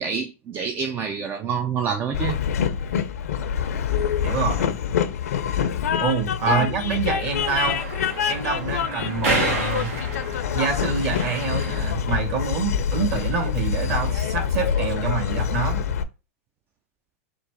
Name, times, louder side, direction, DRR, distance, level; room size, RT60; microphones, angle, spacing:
voice 1, 0.0-2.4 6.5-6.7, right 7 dB, 30° right, 0.5 m, -27 dB
Train, 2.1-16.0, left 8 dB, 80° left, 0.6 m, -25 dB
voice 2, 4.2-4.7 6.0-7.8 8.3-9.9 10.5-15.8, right 5 dB, 45° right, 2.0 m, -26 dB
sound 1, 7.4-11.9, right 2 dB, 75° right, 1.4 m, -30 dB
4.0 x 2.5 x 4.7 m
hypercardioid pair, 125°, 8 cm